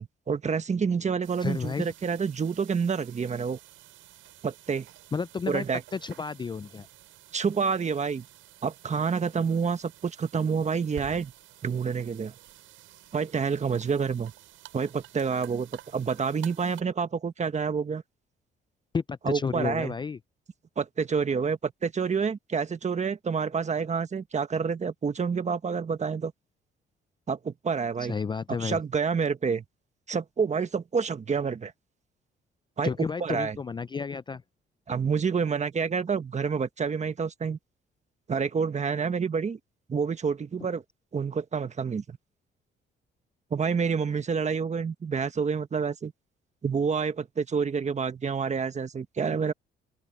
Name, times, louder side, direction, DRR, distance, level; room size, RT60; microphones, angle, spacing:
voice 1, 0.0-3.6 4.4-4.9 5.5-5.8 7.3-8.3 8.6-11.3 11.6-12.3 13.1-14.3 14.7-18.0 19.2-19.9 20.8-26.3 27.3-28.2 28.6-29.6 30.1-31.7 32.8-33.6 34.9-37.6 38.3-39.6 39.9-40.8 41.1-42.2 43.5-46.1 46.6-49.5, right 5 dB, 35° right, 1.4 m, -28 dB
sound 1, 1.2-16.8, right 14 dB, 90° right, 7.8 m, -51 dB
voice 2, 1.4-1.9 5.1-5.6 5.9-6.9 18.9-20.2 28.0-28.8 32.8-34.4, left 5 dB, 25° left, 0.4 m, -31 dB
open air
cardioid pair, 90°, 20 cm